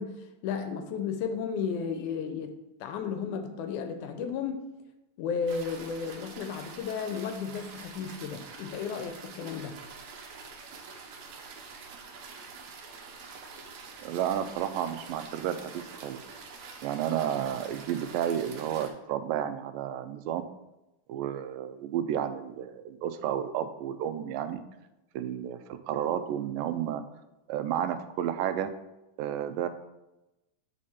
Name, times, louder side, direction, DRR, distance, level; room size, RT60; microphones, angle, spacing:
voice 1, 0.0-2.5 2.8-4.7 5.2-9.8, left 6 dB, 75° left, 7 dB, 1.9 m, -34 dB
sound 1, 5.5-18.9, right 4 dB, 65° right, 1.9 m, -46 dB
voice 2, 14.0-16.2 16.8-20.4 21.1-24.6 25.2-25.6 25.9-27.0 27.5-28.7 29.2-29.7, right 10 dB, 85° right, 10 dB, 2.3 m, -31 dB
8.3 x 5.0 x 4.2 m, 0.95 s
omnidirectional pair, 3.9 m